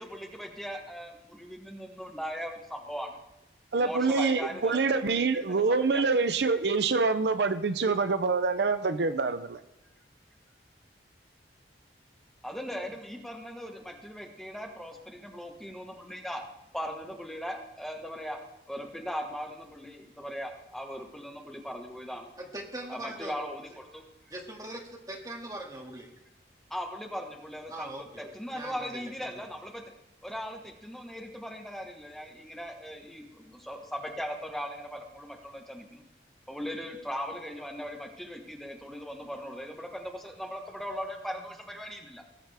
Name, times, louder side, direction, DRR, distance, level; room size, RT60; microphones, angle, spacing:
voice 1, 0.0-3.2 3.8-4.8 5.2-6.0 12.4-16.4 16.7-18.4 18.7-22.3 22.9-24.0 26.7-27.9 28.3-29.8 30.2-36.0 36.5-42.2, equal, ahead, 2 dB, 1.2 m, -39 dB
voice 2, 3.7-9.6, right 4 dB, 70° right, 11 dB, 0.6 m, -26 dB
voice 3, 22.4-23.4 24.3-26.1 27.7-29.4, right 1 dB, 20° right, 0 dB, 2.0 m, -41 dB
19.0 x 7.4 x 3.5 m, 0.95 s
head